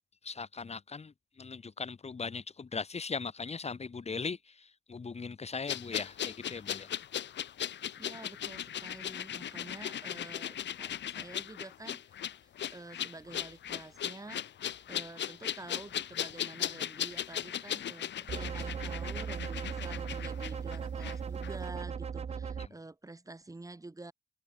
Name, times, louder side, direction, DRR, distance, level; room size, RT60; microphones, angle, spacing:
voice 1, 0.2-6.9 22.6-22.7, left 4 dB, 30° left, 3.3 m, -39 dB
sound 1, 5.7-21.2 21.4-21.5, left 10 dB, 65° left, 2.6 m, -38 dB
voice 2, 8.0-12.1 12.7-14.5 14.9-24.1, right 2 dB, 15° right, 4.7 m, -48 dB
sound 2, 18.3-22.7, right 6 dB, 30° right, 0.7 m, -37 dB
cardioid pair, 90°, 20 cm